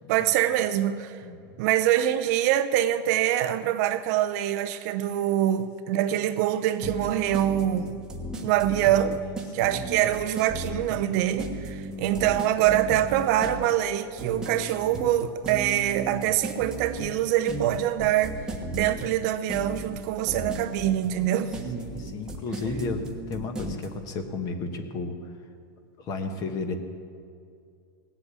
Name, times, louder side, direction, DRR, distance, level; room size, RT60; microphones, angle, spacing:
voice 1, 0.1-1.2 1.6-8.0 8.4-9.2 9.5-18.3 18.7-21.5, right 12 dB, 45° right, 0.6 m, -24 dB
voice 2, 1.2-1.6 8.2-8.6 9.2-9.9 11.9-12.3 21.1-21.5 21.8-25.3 26.0-26.7, left 3 dB, 30° left, 1.3 m, -34 dB
sound 1, 6.8-23.9, right 2 dB, 5° right, 1.3 m, -35 dB
18.0 x 8.1 x 8.3 m
supercardioid pair, 155°, 12 cm